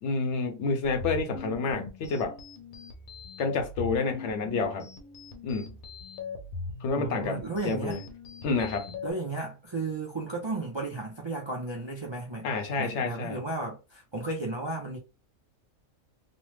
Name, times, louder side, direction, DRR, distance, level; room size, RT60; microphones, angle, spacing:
voice 1, 0.0-2.4 3.4-4.9 5.4-5.8 6.8-8.0 8.4-9.0 12.4-13.4, left 4 dB, 65° left, 0.8 m, -29 dB
sound 1, 0.8-9.1, left 4 dB, 85° left, 1.2 m, -40 dB
voice 2, 7.0-8.0 9.0-15.0, right 2 dB, 40° right, 0.4 m, -34 dB
3.1 x 2.1 x 3.1 m
omnidirectional pair, 1.4 m